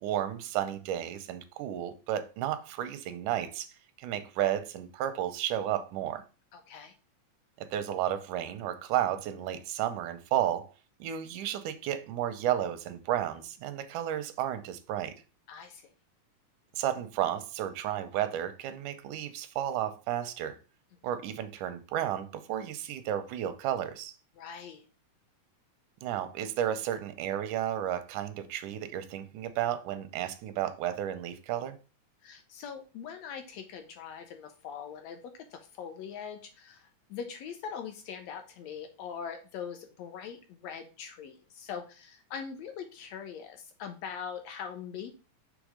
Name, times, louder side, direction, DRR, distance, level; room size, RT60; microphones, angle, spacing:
voice 1, 0.0-3.7 4.0-6.2 7.6-10.7 11.0-15.2 16.7-20.6 21.0-24.1 26.0-31.8, right 11 dB, 90° right, 2.2 m, -32 dB
voice 2, 6.5-6.9 15.5-15.8 24.4-24.8 32.2-35.2 35.5-45.1, left 7 dB, 75° left, 1.7 m, -42 dB
6.3 x 3.3 x 4.9 m
omnidirectional pair, 3.4 m